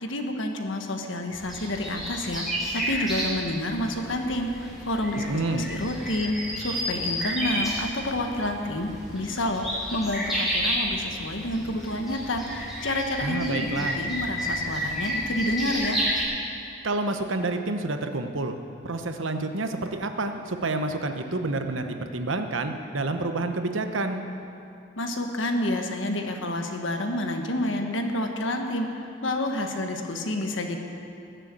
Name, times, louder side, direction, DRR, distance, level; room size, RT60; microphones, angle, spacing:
voice 1, 0.0-2.4 2.7-4.5 4.8-5.4 5.7-16.0 25.0-30.8, left 1 dB, 80° left, 4 dB, 1.4 m, -29 dB
sound 1, 1.3-16.2, equal, ahead, 3.2 m, -31 dB
voice 2, 5.2-5.7 13.2-14.0 16.8-18.6 18.8-24.2, right 2 dB, 85° right, 6 dB, 1.0 m, -29 dB
20.0 x 6.8 x 7.7 m, 2.6 s
head